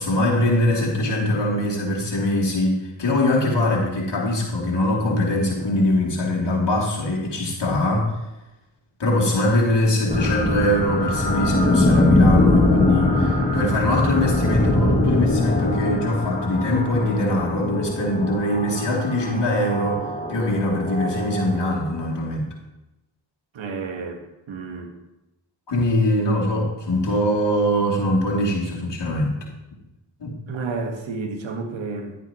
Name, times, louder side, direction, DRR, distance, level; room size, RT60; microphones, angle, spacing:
voice 1, 0.0-8.2 9.0-20.0 20.3-22.5 25.7-29.4 30.2-30.3, left 1 dB, 60° left, -3 dB, 3.0 m, -22 dB
sound 1, 10.1-22.1, left 2 dB, 20° left, 2.1 m, -22 dB
voice 2, 23.5-24.9 30.5-32.2, right 4 dB, 80° right, 4 dB, 1.5 m, -31 dB
11.0 x 9.2 x 3.0 m, 0.95 s
cardioid pair, 45°, 46 cm